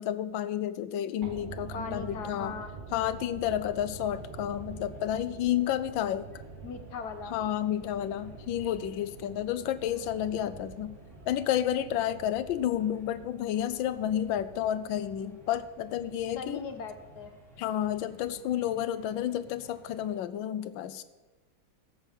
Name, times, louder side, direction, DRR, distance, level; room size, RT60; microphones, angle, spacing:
voice 1, 0.0-2.5 2.9-6.3 7.3-10.9 11.3-16.6 17.6-21.0, left 11 dB, 80° left, 14 dB, 1.3 m, -31 dB
sound 1, 1.2-19.4 19.7-19.8, right 4 dB, 55° right, 0.5 m, -47 dB
voice 2, 1.7-2.7 6.6-7.3 16.4-17.3, left 5 dB, 60° left, 8 dB, 1.4 m, -39 dB
sound 2, 3.0-20.1, left 1 dB, ahead, 2.6 m, -57 dB
13.5 x 5.4 x 7.3 m, 1.2 s
omnidirectional pair, 2.2 m